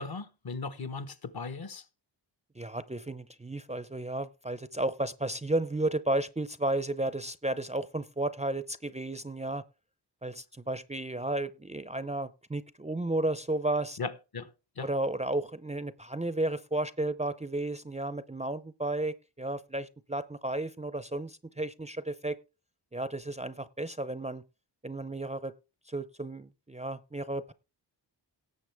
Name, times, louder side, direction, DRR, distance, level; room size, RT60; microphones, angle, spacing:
voice 1, 0.0-1.8 14.0-14.9, left 4 dB, 55° left, 1.2 m, -38 dB
voice 2, 2.6-9.6 10.2-14.0 14.8-22.4 22.9-24.4 24.8-25.5 25.9-27.5, right 2 dB, 15° right, 0.5 m, -33 dB
17.5 x 7.1 x 3.4 m
wide cardioid pair, 90°, 43 cm